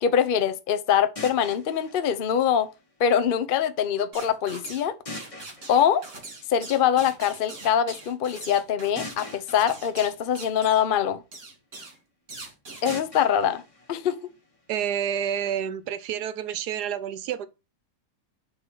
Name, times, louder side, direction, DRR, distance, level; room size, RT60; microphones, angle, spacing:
voice 1, 0.0-2.7 3.0-5.0 5.7-6.0 6.5-11.2 12.8-13.6 13.9-14.2, left 8 dB, 65° left, 0.5 m, -23 dB
sound 1, 1.2-3.2 5.1-7.0 9.0-11.2 12.9-14.9, left 2 dB, 20° left, 1.3 m, -43 dB
sound 2, 4.1-4.9 5.1-10.9 11.3-12.0 12.3-13.0, right 3 dB, 45° right, 2.4 m, -42 dB
voice 2, 14.7-17.5, right 9 dB, 75° right, 1.3 m, -29 dB
8.8 x 3.8 x 4.6 m
omnidirectional pair, 1.8 m